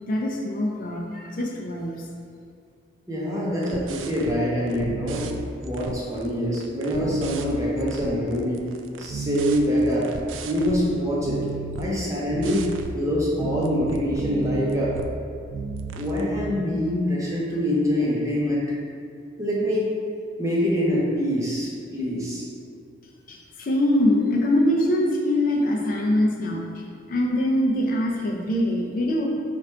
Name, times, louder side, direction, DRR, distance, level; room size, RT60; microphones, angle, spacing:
voice 1, 0.1-2.0 23.3-26.6 27.1-29.3, left 1 dB, 45° left, -1 dB, 0.4 m, -23 dB
voice 2, 3.1-5.3 5.6-8.6 9.0-10.1 10.4-11.5 11.8-12.7 12.9-14.9 15.9-18.7 19.4-19.9 20.4-22.4, equal, 15° right, -5 dB, 0.7 m, -25 dB
sound 1, 3.6-4.4 4.7-6.3 6.5-10.8 11.2-11.9 12.3-13.0 13.4-15.1 15.5-16.2, right 3 dB, 80° right, 0.3 m, -33 dB
4.5 x 2.4 x 4.3 m, 2.3 s
head